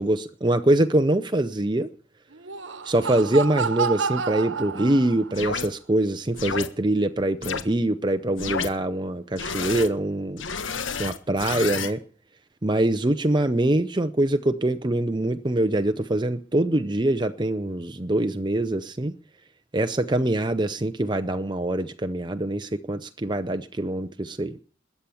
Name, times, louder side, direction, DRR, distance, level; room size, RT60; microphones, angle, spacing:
voice 1, 0.0-1.9 2.9-10.4 11.0-12.0 12.6-19.1 19.7-24.6, right 1 dB, 25° right, 0.7 m, -24 dB
Laughter, 2.3-5.5, right 6 dB, 80° right, 1.2 m, -30 dB
sound 1, 5.3-5.7 6.4-6.7 7.4-7.6 8.4-8.7 9.4-9.9 10.4-11.9, left 6 dB, 90° left, 1.5 m, -30 dB
21.0 x 8.5 x 7.1 m
head